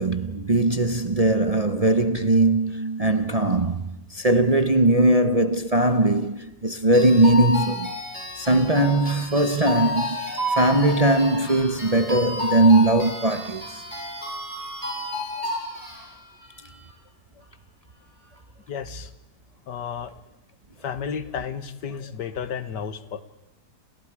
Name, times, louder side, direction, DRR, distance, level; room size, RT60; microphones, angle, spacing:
voice 1, 0.0-7.9 8.3-13.8, right 2 dB, 30° right, 0.7 m, -20 dB
sound 1, 6.9-16.0, left 3 dB, 25° left, 7.1 m, -32 dB
sound 2, 9.3-17.0 17.4-17.5 17.9-18.6, right 3 dB, 80° right, 8.1 m, -37 dB
voice 2, 18.7-19.1 19.7-20.1 20.8-23.2, left 7 dB, 85° left, 1.9 m, -32 dB
30.0 x 27.0 x 4.9 m
omnidirectional pair, 1.8 m